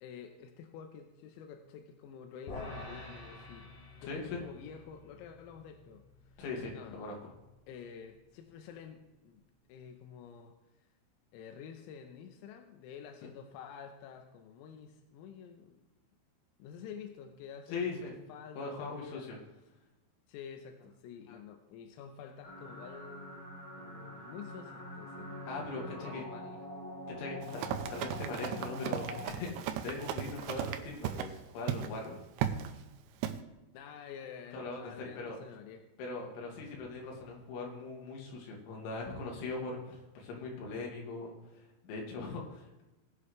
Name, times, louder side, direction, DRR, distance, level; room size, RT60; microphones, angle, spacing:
voice 1, 0.0-3.7 4.0-6.4 6.7-7.0 7.7-9.4 9.7-10.9 11.3-15.8 16.6-18.0 18.3-19.3 20.3-23.5 23.8-25.4 25.9-26.7 27.5-27.6 33.7-35.9, left 7 dB, 90° left, 5 dB, 3.6 m, -49 dB
sound 1, 2.5-8.9, left 2 dB, 45° left, 5.0 m, -50 dB
voice 2, 4.1-4.4 6.4-7.2 17.7-18.1 18.6-19.4 21.3-21.4 25.5-26.2 27.2-32.2 34.5-35.4 36.0-42.8, left 3 dB, 70° left, -1 dB, 4.3 m, -40 dB
sound 2, 22.4-29.3, equal, 10° left, 3.8 m, -44 dB
Run, 27.4-31.3 31.7-31.9 32.4-32.7 33.2-33.4, right 10 dB, 85° right, 2.7 m, -36 dB
20.0 x 7.8 x 3.2 m, 1.0 s
omnidirectional pair, 6.0 m